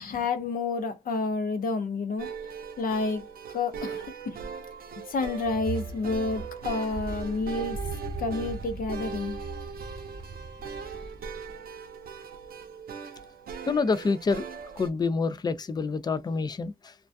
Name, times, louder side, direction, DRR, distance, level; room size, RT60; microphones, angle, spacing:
voice 1, 0.0-2.3 2.8-3.3 3.5-4.4 5.1-7.8 8.2-9.4, left 3 dB, 70° left, 0.7 m, -29 dB
sound 1, 2.2-14.9, right 6 dB, 80° right, 0.5 m, -40 dB
sound 2, 5.3-11.6, right 3 dB, 25° right, 0.6 m, -39 dB
voice 2, 13.7-14.5 14.8-16.9, left 4 dB, 25° left, 0.4 m, -27 dB
2.2 x 2.2 x 2.5 m
wide cardioid pair, 105°, 15 cm